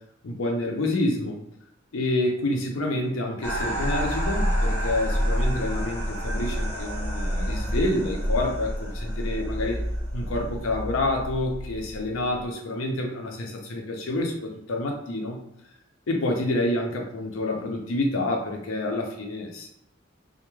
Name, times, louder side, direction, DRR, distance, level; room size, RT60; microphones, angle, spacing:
voice 1, 0.2-1.4 1.9-9.8 10.1-15.4 16.1-19.7, left 1 dB, 80° left, 2 dB, 0.5 m, -28 dB
sound 1, 3.4-12.4, equal, 10° left, 0.6 m, -28 dB
2.2 x 2.1 x 3.0 m, 0.80 s
head